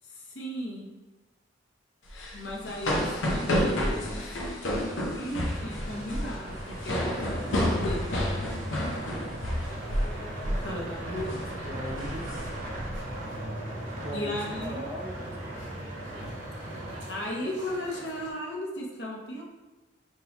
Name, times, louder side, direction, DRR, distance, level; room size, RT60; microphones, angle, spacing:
voice 1, 0.1-0.9 2.3-4.3 5.1-8.1 10.5-11.6 14.1-14.9 17.1-19.4, left 1 dB, 60° left, -2 dB, 0.9 m, -36 dB
sound 1, 2.1-10.1 10.4-10.7 11.1-11.4 11.8-13.0, equal, 85° left, 0.8 m, -30 dB
sound 2, 5.3-18.3, right 1 dB, 75° right, 1.1 m, -45 dB
sound 3, 5.5-17.0, right 1 dB, 45° right, 1.2 m, -39 dB
voice 2, 11.2-12.3 14.0-15.6, equal, 10° right, -3 dB, 0.5 m, -40 dB
4.4 x 3.8 x 2.7 m, 1.2 s
head